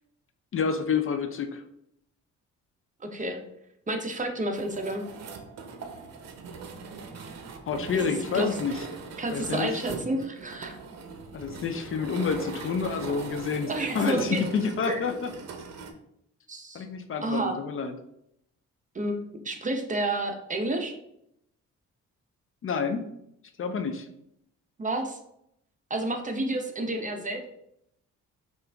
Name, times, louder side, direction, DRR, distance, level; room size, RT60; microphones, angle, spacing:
voice 1, 0.5-1.6 7.7-8.8 9.3-9.9 11.3-15.3 16.7-17.9 22.6-23.1 23.6-24.1, left 5 dB, 45° left, 7 dB, 0.5 m, -29 dB
voice 2, 3.0-3.4 3.9-5.0 7.9-8.0 8.3-8.5 9.2-10.8 13.7-14.4 14.9-15.0 16.5-16.8 17.2-17.6 18.9-20.9 24.8-25.2 25.9-27.4, right 1 dB, 25° right, 4 dB, 0.8 m, -30 dB
sound 1, 4.5-15.9, right 5 dB, 55° right, 0.8 m, -40 dB
5.8 x 2.6 x 3.4 m, 0.76 s
cardioid pair, 90°, 30 cm